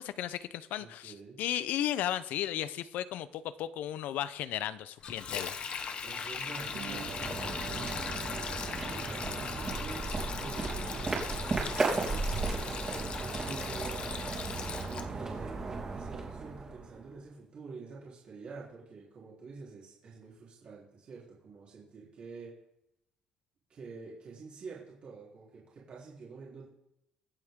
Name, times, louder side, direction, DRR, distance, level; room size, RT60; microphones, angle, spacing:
voice 1, 0.0-5.6, left 12 dB, 70° left, 15 dB, 0.7 m, -35 dB
voice 2, 0.8-1.4 6.0-8.0 8.9-15.6 15.9-22.5 23.7-26.7, right 4 dB, 40° right, -6 dB, 3.6 m, -48 dB
Sink (filling or washing), 5.0-15.1, left 6 dB, 40° left, 1.0 m, -39 dB
sound 1, 6.4-17.1, right 3 dB, 20° right, 3.2 m, -36 dB
sound 2, 6.7-14.2, right 5 dB, 70° right, 2.4 m, -49 dB
23.5 x 8.0 x 3.8 m, 0.83 s
cardioid pair, 165°, 3 cm